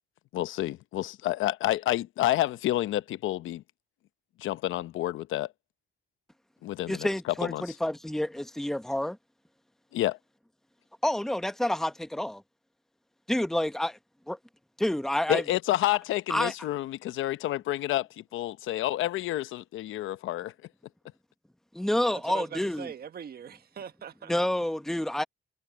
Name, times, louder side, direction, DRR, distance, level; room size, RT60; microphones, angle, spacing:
voice 1, 0.3-3.6 4.4-5.5 6.6-7.1 7.4-7.6 9.9-10.2 15.3-20.5, left 14 dB, 80° left, 0.9 m, -29 dB
voice 2, 6.9-9.2 11.0-12.4 13.3-14.0 14.3-14.4 14.8-15.4 16.3-16.5 21.7-22.9 24.3-25.2, left 1 dB, ahead, 1.2 m, -28 dB
voice 3, 22.0-24.3, right 8 dB, 50° right, 1.4 m, -42 dB
cardioid pair, 90°, 20 cm